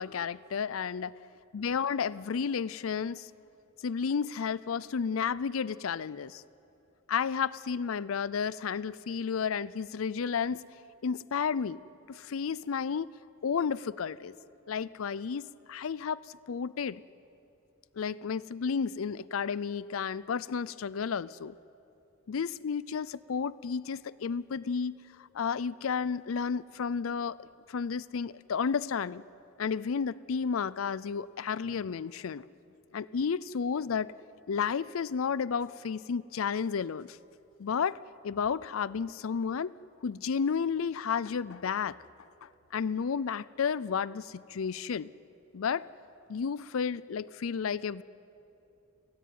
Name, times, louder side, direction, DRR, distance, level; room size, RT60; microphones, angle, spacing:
voice 1, 0.0-1.1 1.5-3.3 3.8-6.4 7.1-10.6 11.0-11.8 12.1-13.1 13.4-14.3 14.7-17.0 18.0-21.6 22.3-29.2 29.6-32.4 32.9-34.1 34.5-37.2 37.6-38.0 38.2-39.7 40.0-42.0 42.4-45.1 45.5-45.9 46.3-48.0, left 6 dB, 85° left, 19 dB, 0.5 m, -32 dB
25.5 x 17.5 x 9.4 m, 2.8 s
head